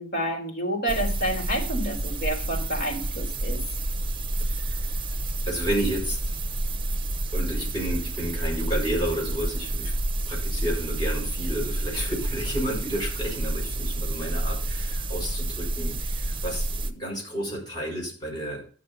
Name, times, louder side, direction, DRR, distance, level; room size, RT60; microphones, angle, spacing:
voice 1, 0.0-3.6, right 1 dB, 55° left, 1 dB, 3.7 m, -29 dB
sound 1, 0.9-16.9, right 1 dB, 25° right, 0.9 m, -29 dB
voice 2, 4.4-4.9 5.5-6.2 7.3-9.9 10.3-18.7, right 1 dB, 25° left, -3 dB, 6.2 m, -31 dB
11.5 x 6.7 x 5.5 m, 0.41 s
head